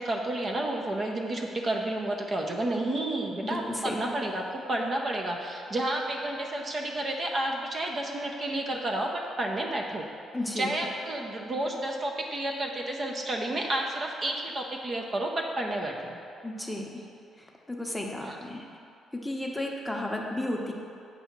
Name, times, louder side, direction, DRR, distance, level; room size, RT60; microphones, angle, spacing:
voice 1, 0.0-10.0 10.6-16.2 18.2-18.4, right 1 dB, 40° right, 1 dB, 0.6 m, -31 dB
voice 2, 3.5-4.1 10.3-10.7 16.4-17.0 17.4-18.7 19.1-20.7, left 1 dB, 5° left, -1 dB, 0.8 m, -33 dB
8.1 x 2.8 x 5.9 m, 2.5 s
cardioid pair, 90°, 0 cm